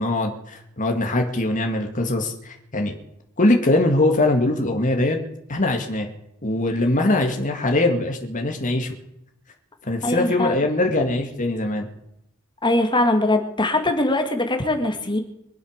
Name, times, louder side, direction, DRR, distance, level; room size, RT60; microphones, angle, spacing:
voice 1, 0.0-2.9 3.4-5.2 5.5-6.1 6.4-8.9 9.8-11.9, left 2 dB, 35° left, 3 dB, 2.1 m, -22 dB
voice 2, 10.0-10.6 12.6-15.2, left 2 dB, 20° left, 5 dB, 2.2 m, -21 dB
24.5 x 8.2 x 6.6 m, 0.79 s
head